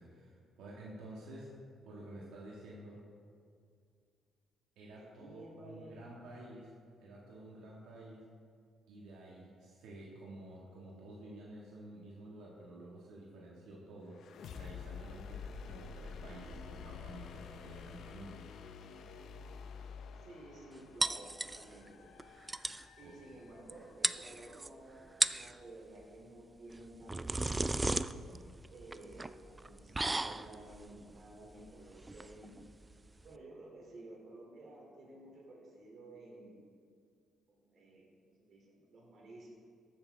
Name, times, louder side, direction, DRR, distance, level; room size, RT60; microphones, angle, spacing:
voice 1, 0.0-1.5 1.8-3.0 4.7-6.7 7.0-8.2 8.9-14.2 14.5-18.4 23.0-23.4, right 1 dB, 90° right, -4 dB, 1.7 m, -51 dB
voice 2, 5.0-6.1 20.2-22.1 23.0-27.8 28.7-32.6 33.2-36.6 37.5-39.6, right 1 dB, 55° right, -3 dB, 2.7 m, -53 dB
sound 1, 14.1-23.9, left 6 dB, 70° left, 0.6 m, -49 dB
sound 2, 21.0-21.9 22.2-22.3 22.5-22.9 23.7-23.8 24.0-24.7 25.1-25.5 26.7-33.4, right 2 dB, 20° right, 0.3 m, -36 dB
14.0 x 8.6 x 3.5 m, 2.2 s
cardioid pair, 90°, 0 cm